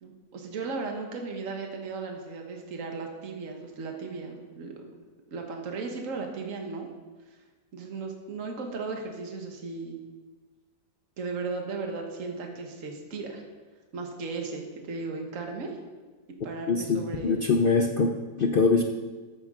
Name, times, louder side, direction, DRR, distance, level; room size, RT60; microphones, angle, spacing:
voice 1, 0.0-4.9 5.3-6.9 7.7-10.0 11.2-13.4 13.9-15.8 16.4-17.4, right 4 dB, 50° right, 2 dB, 1.6 m, -36 dB
voice 2, 16.7-18.8, left 4 dB, 75° left, 4 dB, 0.5 m, -23 dB
14.0 x 8.9 x 3.7 m, 1.3 s
omnidirectional pair, 1.8 m